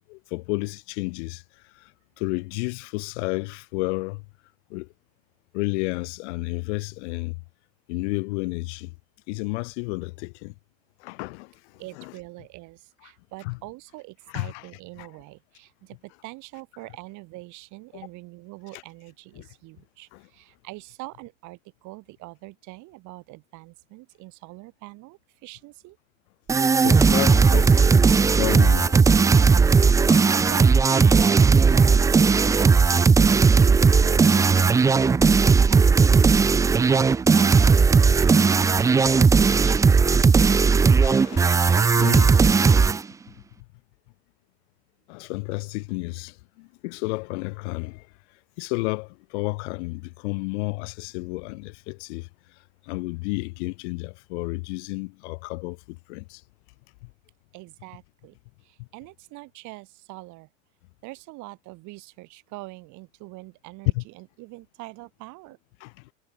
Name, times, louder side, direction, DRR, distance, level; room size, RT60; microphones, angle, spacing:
voice 1, 0.1-1.4 1.7-1.9 2.2-4.3 4.7-4.9 5.5-7.4 7.9-8.9 9.3-10.5 11.0-12.1 13.4-13.6 14.3-14.7 15.0-15.1 18.7-18.8 19.4-19.5 20.1-20.3 26.8-28.1 28.3-29.0 29.3-29.4 30.1-30.3 41.0-42.4 42.9-43.0 45.1-48.1 48.6-52.3 52.8-56.4 57.0-57.1 58.8-58.9 63.9-64.0 65.8-66.1, left 26 dB, 60° left, 3.6 m, -32 dB
voice 2, 11.8-26.0 29.9-32.0 32.3-41.0 57.5-58.4 58.6-60.5 61.0-65.6, right 22 dB, 50° right, 3.4 m, -43 dB
sound 1, 26.5-43.0, right 5 dB, 10° right, 0.4 m, -17 dB
hypercardioid pair, 105°, 38 cm